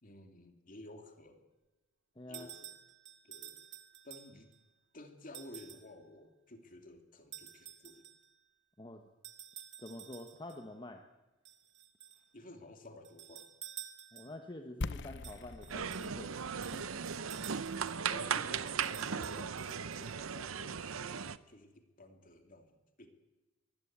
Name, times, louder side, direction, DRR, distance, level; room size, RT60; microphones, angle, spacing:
voice 1, 0.0-1.5 2.3-2.7 3.2-3.7 4.0-4.5 4.9-8.1 12.3-13.5 18.1-23.1, left 1 dB, 40° left, 5 dB, 2.7 m, -53 dB
voice 2, 2.2-2.5 8.8-9.1 9.8-11.0 14.1-16.4 16.7-16.9, left 1 dB, 25° left, 4 dB, 1.3 m, -47 dB
sound 1, 2.3-4.6 5.3-5.9 7.3-8.3 9.2-10.6 11.4-12.3 13.0-14.5 15.2-18.0 18.7-20.4, right 11 dB, 60° right, 1.9 m, -51 dB
sound 2, 14.8-20.5, left 3 dB, 60° left, 0.7 m, -46 dB
sound 3, 15.7-21.4, right 7 dB, 90° right, 0.8 m, -37 dB
23.0 x 15.5 x 8.8 m, 1.1 s
head